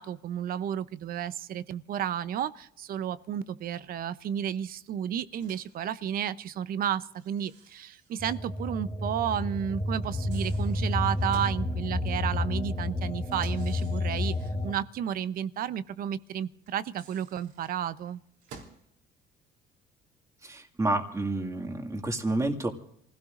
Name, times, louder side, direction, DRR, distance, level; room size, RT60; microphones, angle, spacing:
voice 1, 0.0-18.2, right 9 dB, 60° right, 0.7 m, -32 dB
Microwave oven, 5.3-5.8 7.2-8.5 8.8-8.9 10.0-11.6 13.3-14.7 16.7-18.9, right 5 dB, 85° right, 3.5 m, -53 dB
sound 1, 8.2-14.7, left 2 dB, 25° left, 1.6 m, -30 dB
voice 2, 20.4-22.7, right 2 dB, 20° right, 2.2 m, -29 dB
28.0 x 16.5 x 2.5 m
cardioid pair, 110°, 17 cm